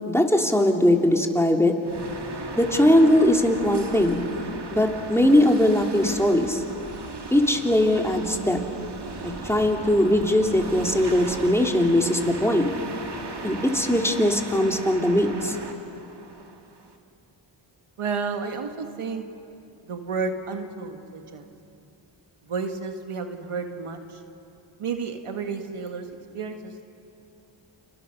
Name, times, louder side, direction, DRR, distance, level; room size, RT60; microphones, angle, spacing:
voice 1, 0.1-1.7 2.6-4.3 4.7-6.6 7.3-8.6 9.2-12.7 13.4-15.6, left 1 dB, 5° left, 1 dB, 3.1 m, -20 dB
sound 1, 1.8-17.0, right 3 dB, 55° right, 2.4 m, -37 dB
voice 2, 18.0-19.2 19.8-21.5 22.5-24.2 24.8-26.1 26.3-26.8, right 5 dB, 90° right, 6 dB, 1.7 m, -31 dB
29.5 x 27.5 x 6.6 m, 2.7 s
cardioid pair, 50°, 49 cm